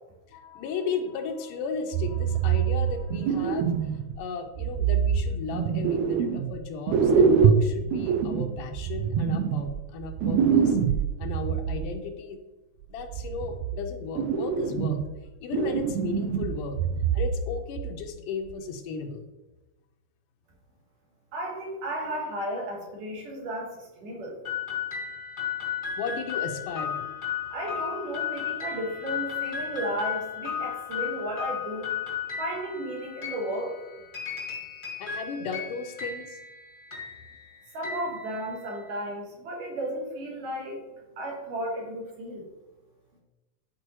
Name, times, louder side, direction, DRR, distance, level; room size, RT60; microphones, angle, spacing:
voice 1, 0.3-10.8 11.2-12.4 12.9-15.0 15.4-16.8 17.1-19.2 26.0-27.1 35.0-36.4, left 5 dB, 80° left, 5 dB, 2.2 m, -35 dB
sound 1, 1.9-4.2 4.6-6.6 6.9-11.8 12.8-13.8 14.2-15.2 15.5-17.5 17.8-18.0 18.5-18.6, right 6 dB, 85° right, 1.6 m, -25 dB
voice 2, 21.3-24.4 27.5-31.9 32.4-33.7 37.7-40.8 41.2-42.5, right 1 dB, 70° right, -2 dB, 3.0 m, -34 dB
sound 2, 24.4-38.9, left 8 dB, 25° left, 1.1 m, -35 dB
11.0 x 4.4 x 3.0 m, 1.1 s
omnidirectional pair, 3.9 m